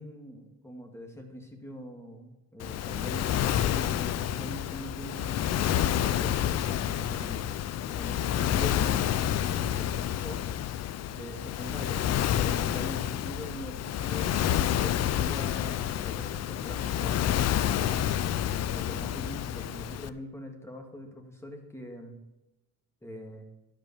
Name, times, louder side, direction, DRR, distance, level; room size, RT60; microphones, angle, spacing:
voice 1, 0.0-7.4 8.0-10.4 11.1-18.0 18.5-22.2 23.0-23.4, equal, 10° left, 2 dB, 2.3 m, -43 dB
Waves surf, 2.6-20.1, left 11 dB, 55° left, 0.5 m, -29 dB
11.5 x 5.4 x 7.1 m, 0.98 s
cardioid pair, 90°, 30 cm